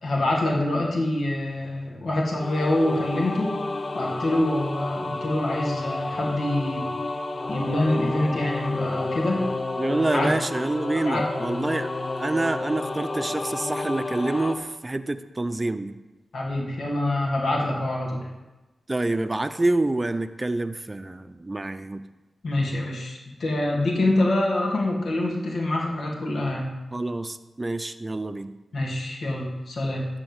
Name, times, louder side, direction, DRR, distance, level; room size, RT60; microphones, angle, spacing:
voice 1, 0.0-3.5 3.9-6.9 7.5-9.5 10.1-10.3 11.0-11.2 16.3-18.3 22.4-26.7 28.7-30.1, left 1 dB, 75° left, -2 dB, 2.5 m, -25 dB
sound 1, 2.4-14.6, left 2 dB, 45° left, 0.9 m, -31 dB
voice 2, 9.8-11.9 12.1-15.9 18.9-22.0 26.9-28.5, right 2 dB, 25° right, 10 dB, 0.7 m, -27 dB
12.5 x 4.2 x 8.2 m, 1.1 s
cardioid pair, 65°, 0 cm